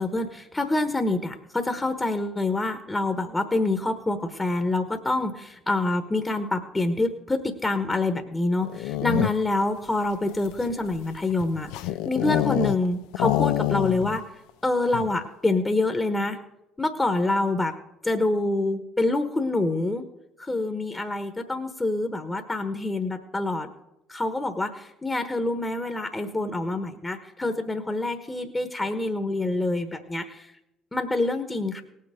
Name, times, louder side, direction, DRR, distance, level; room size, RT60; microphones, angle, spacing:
voice 1, 0.0-14.2 14.6-16.4 16.8-17.7 18.0-20.0 20.4-23.7 24.1-30.5 30.9-31.8, left 2 dB, 15° left, 7 dB, 1.1 m, -26 dB
sound 1, 8.6-9.6 10.3-12.9 13.1-14.2 14.5-14.6 14.9-15.3, left 15 dB, 70° left, 0.3 m, -26 dB
18.5 x 6.7 x 5.0 m, 0.88 s
hypercardioid pair, 55°, 0 cm